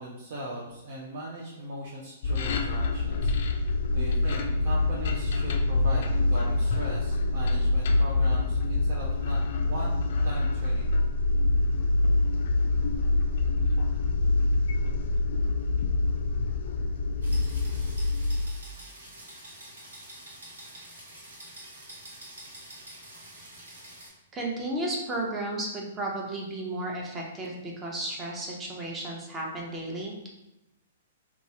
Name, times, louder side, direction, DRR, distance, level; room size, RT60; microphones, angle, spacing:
voice 1, 0.0-10.0 10.2-10.9, right 1 dB, 60° right, -4 dB, 0.5 m, -39 dB
sound 1, 2.2-18.5, left 2 dB, 60° left, 0.3 m, -25 dB
sound 2, 17.2-24.1, right 1 dB, 85° right, 1.3 m, -46 dB
voice 2, 24.3-30.1, right 1 dB, 20° right, -1 dB, 0.6 m, -33 dB
2.9 x 2.3 x 2.7 m, 0.92 s
hypercardioid pair, 125°, 0 cm